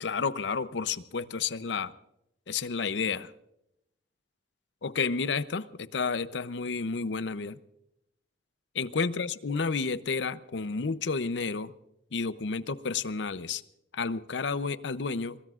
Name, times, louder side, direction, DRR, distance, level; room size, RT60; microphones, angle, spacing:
voice 1, 0.0-1.9 2.5-3.3 4.8-7.6 8.7-11.7 12.1-13.6 13.9-15.4, left 5 dB, 85° left, 15 dB, 0.7 m, -31 dB
23.0 x 22.0 x 2.5 m, 0.82 s
head